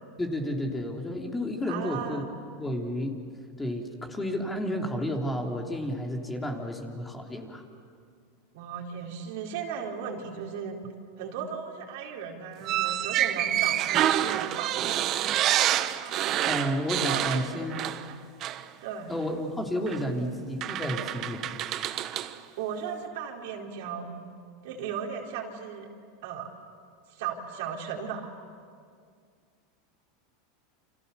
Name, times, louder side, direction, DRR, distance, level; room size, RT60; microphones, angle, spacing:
voice 1, 0.2-2.2 2.6-3.2 3.6-7.6 16.4-17.9 19.1-21.6, equal, 10° left, 1 dB, 3.3 m, -31 dB
voice 2, 1.7-2.3 8.5-10.8 11.2-15.2 16.0-16.3 17.0-17.7 18.8-19.2 22.6-24.2 24.6-25.9 26.2-26.5 27.1-28.2, right 7 dB, 70° right, 0 dB, 4.1 m, -36 dB
sound 1, 12.6-18.1 18.4-18.6 19.9-20.0 20.6-22.3, right 12 dB, 40° right, 1.1 m, -27 dB
29.0 x 27.0 x 7.0 m, 2.2 s
supercardioid pair, 125°, 0 cm